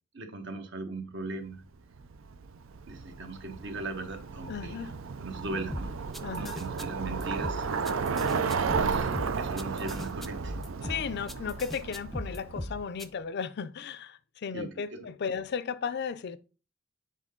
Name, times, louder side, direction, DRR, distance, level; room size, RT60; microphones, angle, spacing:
voice 1, 0.1-1.6 2.9-4.8 5.2-6.0 6.4-7.7 8.4-10.6 14.5-15.0, right 2 dB, 65° right, 1.2 m, -39 dB
Bicycle, 1.9-12.8, right 5 dB, 80° right, 0.5 m, -33 dB
voice 2, 4.5-4.9 6.2-6.6 10.8-16.4, left 6 dB, 55° left, 0.4 m, -35 dB
sound 1, 5.7-13.0, left 1 dB, ahead, 0.4 m, -38 dB
7.4 x 3.8 x 3.8 m
head